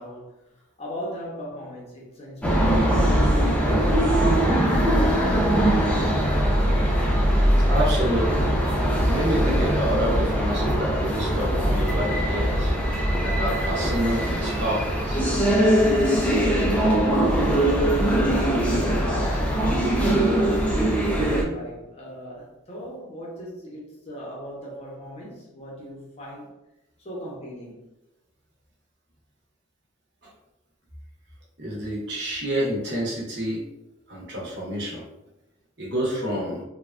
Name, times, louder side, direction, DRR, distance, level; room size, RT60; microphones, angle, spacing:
voice 1, 0.0-6.6 17.9-26.5 27.0-27.9, equal, 30° left, 0.7 m, -38 dB
sound 1, 2.4-21.4, right 1 dB, 5° left, 0.3 m, -21 dB
voice 2, 7.6-8.6 9.1-12.8 13.2-15.3 31.6-33.6 34.1-35.0 35.8-36.6, right 1 dB, 55° right, 0.9 m, -28 dB
3.3 x 2.2 x 2.4 m
head